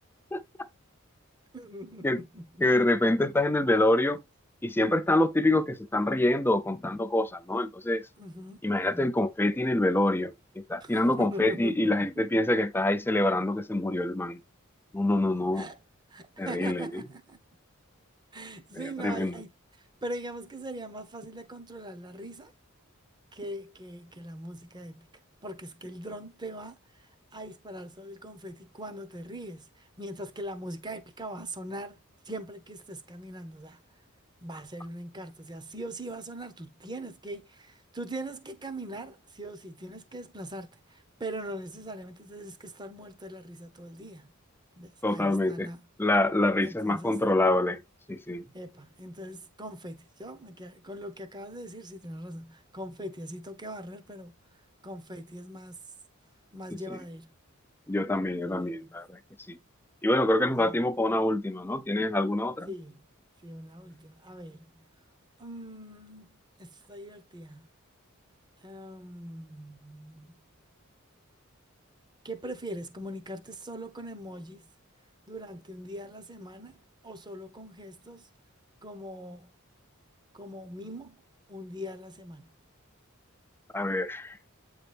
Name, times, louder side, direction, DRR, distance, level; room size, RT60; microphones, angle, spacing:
voice 1, 1.5-2.7 8.2-9.1 10.8-12.1 15.5-15.8 16.1-17.4 18.3-19.5 20.0-22.5 23.3-25.1 25.4-32.0 32.2-33.8 34.4-44.3 44.8-45.8 46.6-47.2 48.5-54.3 54.8-55.8 56.5-57.3 58.4-58.9 60.6-60.8 62.7-63.0 63.4-64.8 65.4-67.6 68.6-70.4 72.2-74.7 75.3-76.8 77.0-78.3 78.8-79.5 80.3-81.2 81.5-82.5, right 1 dB, 20° right, 1.0 m, -41 dB
voice 2, 2.6-4.2 4.6-8.0 8.6-14.4 14.9-15.7 16.4-17.0 18.7-19.4 45.0-45.7 46.0-47.8 48.1-48.4 56.9-57.0 57.9-59.2 59.5-59.6 60.0-62.7 83.7-84.4, left 1 dB, 10° left, 0.5 m, -26 dB
8.5 x 4.0 x 3.5 m
head